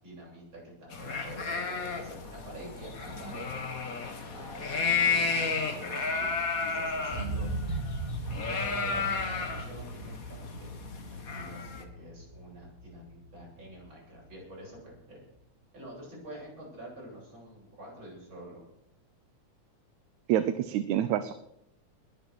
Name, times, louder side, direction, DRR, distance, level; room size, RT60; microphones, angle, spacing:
voice 1, 0.0-3.5 4.3-5.5 5.7-6.3 6.6-7.8 8.2-10.7 11.3-15.2 15.7-18.6, right 1 dB, 40° right, -4 dB, 8.8 m, -47 dB
sound 1, 0.9-11.8, left 4 dB, 35° left, 1.6 m, -32 dB
sound 2, 7.1-15.0 15.4-15.5, right 2 dB, 25° right, 1.7 m, -39 dB
voice 2, 20.3-21.3, right 11 dB, 80° right, 11 dB, 2.1 m, -27 dB
21.0 x 8.7 x 6.5 m, 0.78 s
omnidirectional pair, 3.4 m